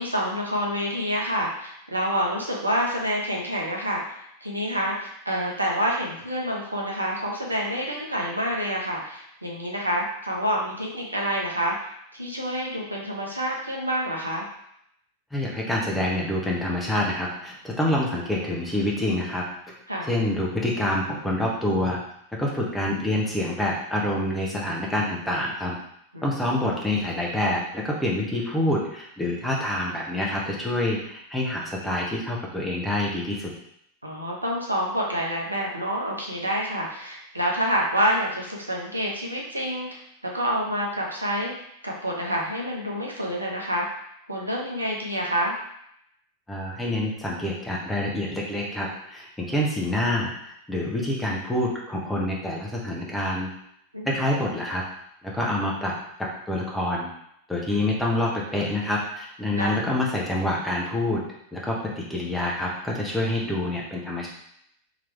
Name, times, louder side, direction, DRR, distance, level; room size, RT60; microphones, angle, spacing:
voice 1, 0.0-11.7 12.1-14.5 19.9-20.1 26.1-26.6 34.0-43.9 44.3-45.5 53.9-54.2 59.6-59.9, equal, 85° right, -2 dB, 0.9 m, -28 dB
voice 2, 15.3-19.8 20.1-22.0 22.4-25.8 26.2-33.5 46.5-53.5 54.0-54.8 55.2-55.9 56.5-57.1 57.5-61.2 61.5-64.3, left 1 dB, 5° left, -3 dB, 1.0 m, -27 dB
3.8 x 3.1 x 3.2 m, 0.74 s
figure-of-eight pair, 90°, 0 cm